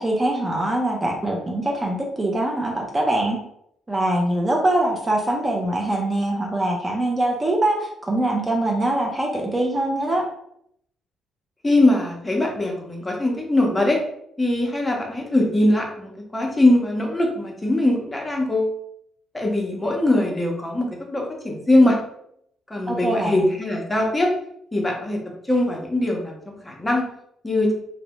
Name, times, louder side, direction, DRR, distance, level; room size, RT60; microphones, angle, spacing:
voice 1, 0.0-3.4 3.9-10.3 22.9-23.4, right 1 dB, 25° right, 0 dB, 0.5 m, -23 dB
voice 2, 11.6-14.0 14.4-18.7 19.3-22.0 22.7-24.3 24.7-25.2 25.5-27.0 27.4-27.7, left 1 dB, 15° left, 0 dB, 0.7 m, -21 dB
2.6 x 2.1 x 2.9 m, 0.72 s
cardioid pair, 90°, 0 cm